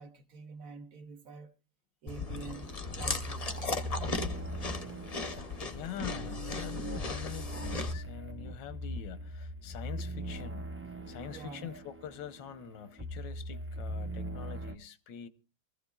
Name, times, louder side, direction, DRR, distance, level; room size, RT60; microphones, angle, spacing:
voice 1, 0.0-1.5 2.0-3.7 11.3-11.8, right 4 dB, 55° right, 1.3 m, -47 dB
Chewing mastication, 2.1-7.9, left 4 dB, 35° left, 0.6 m, -37 dB
sound 1, 2.2-14.7, equal, 10° right, 0.6 m, -40 dB
voice 2, 5.6-10.7 11.1-15.3, left 9 dB, 85° left, 1.6 m, -44 dB
24.0 x 15.0 x 2.3 m
omnidirectional pair, 1.9 m